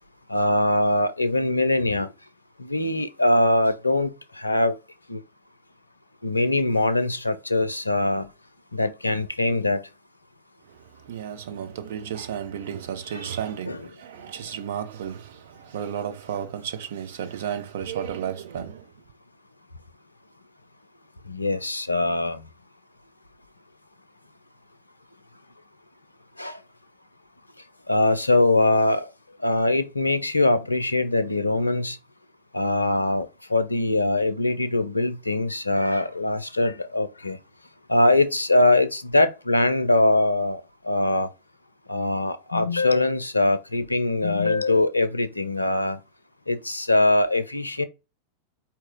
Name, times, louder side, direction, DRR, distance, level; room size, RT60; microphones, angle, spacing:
voice 1, 0.3-2.1 2.6-4.8 5.1-5.2 6.2-8.3 8.7-9.8 13.7-13.8 21.3-22.4 26.4-26.6 27.9-29.1 29.4-32.0 32.5-37.4 37.9-41.3 41.9-46.0 46.5-47.8, left 2 dB, 85° left, 0.4 m, -22 dB
voice 2, 10.6-18.9, right 9 dB, 60° right, 0.7 m, -33 dB
4.3 x 2.8 x 3.6 m
figure-of-eight pair, 90°, 0 cm